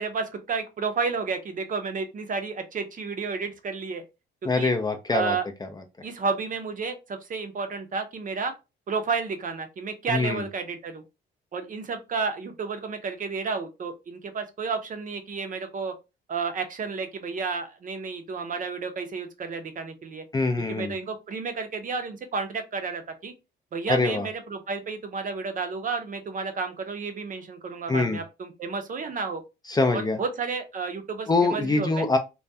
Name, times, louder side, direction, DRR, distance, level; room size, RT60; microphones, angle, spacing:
voice 1, 0.0-4.0 4.4-4.7 5.1-5.5 6.0-8.5 8.9-11.0 11.5-15.9 16.3-20.2 20.7-23.3 23.7-29.4 29.9-32.1, right 4 dB, 40° right, 0.6 m, -31 dB
voice 2, 4.4-5.4 5.6-5.7 10.1-10.4 20.3-20.9 23.9-24.3 27.9-28.2 29.7-30.2 31.3-32.2, left 3 dB, 20° left, 0.4 m, -24 dB
2.3 x 2.2 x 2.6 m
cardioid pair, 90°, 20 cm